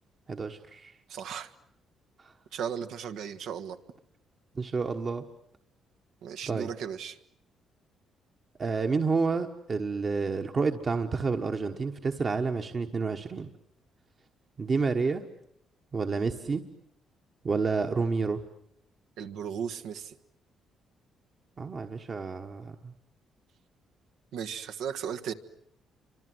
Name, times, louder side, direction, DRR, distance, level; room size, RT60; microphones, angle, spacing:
voice 1, 0.3-0.9 2.2-2.3 4.5-5.2 6.5-6.7 8.6-13.5 14.6-15.2 15.9-16.6 17.4-18.4 21.6-22.9, right 4 dB, 35° right, 5 dB, 1.3 m, -29 dB
voice 2, 1.1-1.5 2.5-3.8 6.2-7.2 19.2-20.1 24.3-25.3, right 8 dB, 85° right, 8 dB, 1.5 m, -36 dB
30.0 x 25.5 x 7.9 m, 0.72 s
cardioid pair, 120°, 0 cm